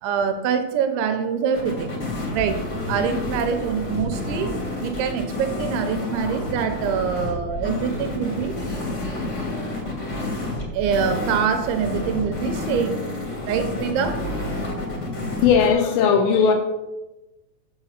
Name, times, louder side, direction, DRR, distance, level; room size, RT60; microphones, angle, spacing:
voice 1, 0.0-2.0 2.3-2.6 2.9-8.6 10.7-13.0 13.5-14.2, right 7 dB, 75° right, 7 dB, 2.9 m, -25 dB
sound 1, 1.5-15.7, left 2 dB, 70° left, 0.7 m, -29 dB
voice 2, 15.4-16.5, left 6 dB, 85° left, 4 dB, 2.5 m, -17 dB
8.2 x 7.2 x 5.7 m, 1.0 s
omnidirectional pair, 5.8 m